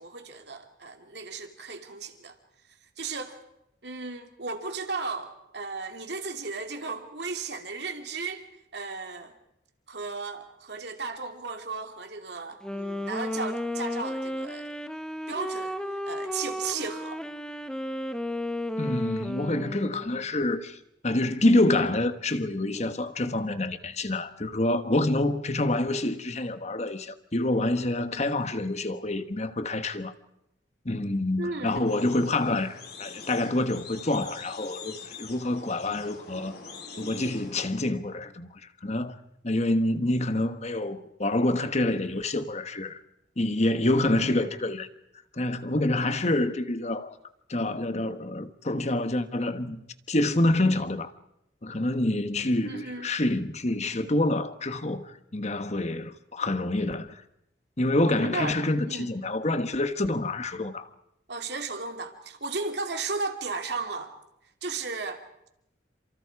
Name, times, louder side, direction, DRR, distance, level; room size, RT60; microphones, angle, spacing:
voice 1, 0.0-2.3 3.0-3.4 3.8-8.4 8.7-9.4 9.9-14.7 15.3-15.8 16.1-17.2 31.4-32.0 52.6-53.1 58.0-58.6 58.8-59.1 61.3-64.2 64.6-65.2, right 4 dB, 65° right, 2.8 m, -35 dB
Wind instrument woodwind instrument, 12.5-20.2, left 1 dB, 5° left, 1.0 m, -33 dB
voice 2, 18.8-20.8 21.0-30.1 30.8-36.5 37.0-38.5 38.8-39.1 39.4-43.0 43.4-44.9 45.3-47.2 47.5-49.8 50.1-51.1 51.6-57.2 57.8-60.9, left 1 dB, 40° left, 1.3 m, -27 dB
sound 1, 31.8-37.5, left 5 dB, 60° left, 4.0 m, -44 dB
29.0 x 27.0 x 4.8 m
head